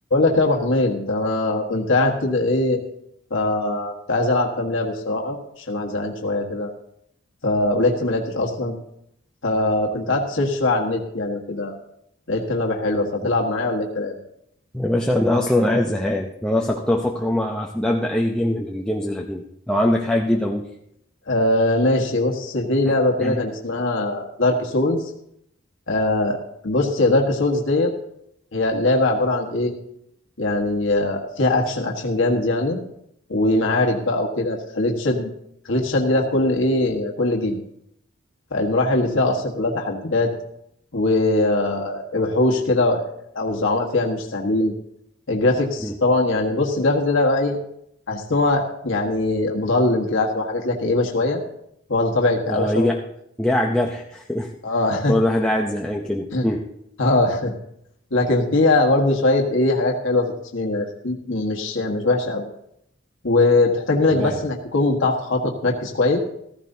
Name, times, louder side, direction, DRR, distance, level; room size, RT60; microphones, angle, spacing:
voice 1, 0.1-2.8 3.3-6.7 7.4-8.7 9.4-11.7 12.3-14.2 21.3-25.0 25.9-27.9 28.5-29.7 30.4-32.8 33.3-35.3 35.6-37.6 38.5-40.3 40.9-43.0 43.3-44.7 45.3-47.6 48.1-51.4 51.9-52.9 54.6-55.1 56.3-56.5 57.0-57.5 58.1-62.4 63.2-66.2, left 2 dB, 70° left, 0 dB, 1.5 m, -21 dB
voice 2, 14.7-20.7 23.2-23.4 45.8-46.0 52.5-53.0 53.4-54.5 55.1-56.7 64.1-64.4, left 1 dB, 5° left, -1 dB, 0.7 m, -22 dB
15.0 x 14.5 x 2.8 m, 0.76 s
head